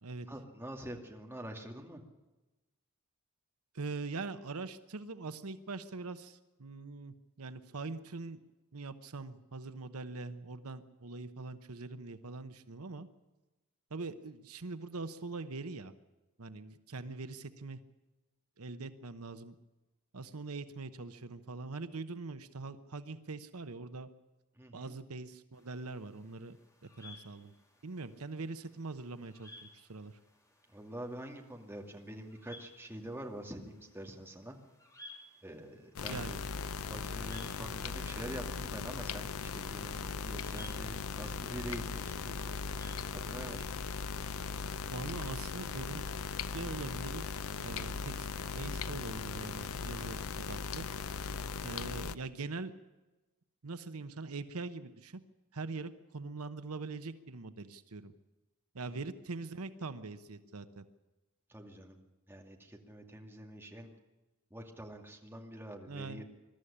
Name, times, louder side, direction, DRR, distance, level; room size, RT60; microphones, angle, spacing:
voice 1, 0.3-2.0 16.9-17.0 24.6-24.9 30.7-34.5 35.4-36.4 36.9-42.6 43.1-43.7 58.9-59.0 61.5-62.0 62.3-63.9 64.5-66.2, right 1 dB, 10° right, 1 dB, 2.4 m, -46 dB
voice 2, 3.7-8.4 8.7-13.1 13.9-15.9 16.4-17.8 18.6-19.5 20.1-24.1 24.7-27.5 27.8-30.2 36.1-36.3 44.9-46.0 46.5-48.3 48.6-50.9 51.6-52.7 53.6-55.2 55.5-58.1 58.7-60.8 65.9-66.2, right 3 dB, 80° right, 11 dB, 1.0 m, -43 dB
sound 1, 25.5-44.8, left 1 dB, 15° left, 2.5 m, -59 dB
sound 2, 36.0-52.2, left 5 dB, 70° left, 0.7 m, -39 dB
21.5 x 13.0 x 10.0 m, 1.1 s
head